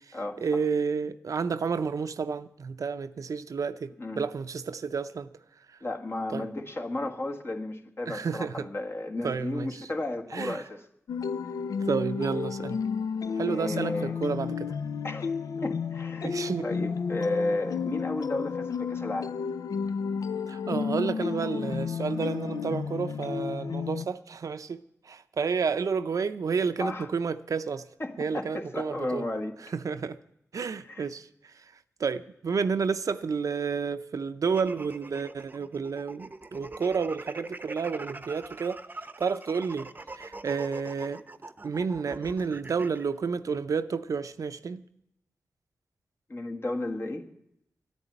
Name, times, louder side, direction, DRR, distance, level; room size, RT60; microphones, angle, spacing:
voice 1, 0.1-5.3 6.3-6.5 8.1-8.7 9.2-9.9 10.3-10.6 11.8-12.8 13.4-14.7 16.2-16.7 20.5-27.9 28.2-29.3 29.7-30.2 30.5-31.6 32.0-38.8 39.2-39.9 40.1-41.2 41.6-44.8, right 5 dB, 70° right, 0.5 m, -30 dB
voice 2, 5.8-10.8 13.4-14.1 15.0-15.3 15.6-16.3 16.6-19.3 26.8-27.1 28.0-29.5 30.9-31.0 46.3-47.3, left 2 dB, 45° left, 1.6 m, -33 dB
sound 1, 11.1-24.1, left 6 dB, 85° left, 0.4 m, -32 dB
sound 2, 34.4-43.1, right 2 dB, 30° right, 0.7 m, -42 dB
11.0 x 9.6 x 9.1 m
cardioid pair, 45°, 6 cm